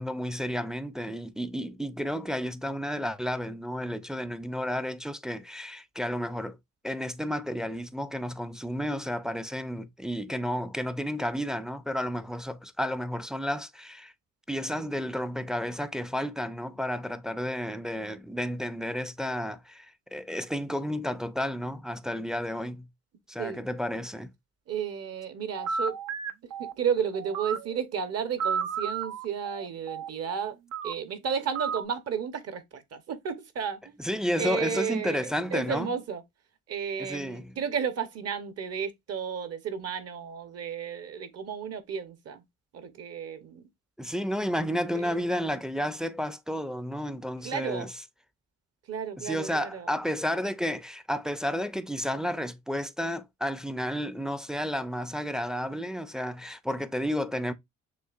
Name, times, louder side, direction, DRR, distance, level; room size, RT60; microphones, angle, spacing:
voice 1, 0.0-6.6 6.8-14.1 14.5-22.9 23.3-24.3 34.0-35.9 37.0-37.5 44.0-47.9 49.2-57.5, equal, ahead, 0.4 m, -32 dB
voice 2, 24.7-25.9 26.6-30.6 30.8-33.9 34.4-36.2 36.7-42.4 42.7-43.7 44.9-45.2 47.4-47.9 48.9-49.9, right 7 dB, 55° right, 0.9 m, -33 dB
sound 1, 25.5-27.8 28.4-30.9 31.5-31.8, right 6 dB, 90° right, 0.6 m, -33 dB
6.5 x 2.5 x 2.4 m
cardioid pair, 90°, 30 cm